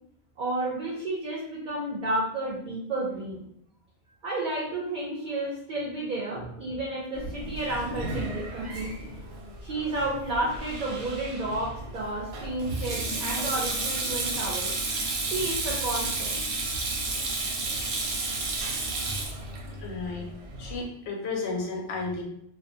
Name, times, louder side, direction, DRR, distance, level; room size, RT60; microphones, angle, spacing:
voice 1, 0.4-3.4 4.2-9.1 9.6-14.7 15.2-16.4, right 2 dB, 55° right, -2 dB, 0.5 m, -31 dB
Sink (filling or washing), 7.1-20.8, right 3 dB, 90° right, 0.8 m, -32 dB
voice 2, 19.8-20.3 20.6-22.2, left 3 dB, 85° left, 0 dB, 0.9 m, -32 dB
2.4 x 2.1 x 2.6 m, 0.72 s
omnidirectional pair, 1.1 m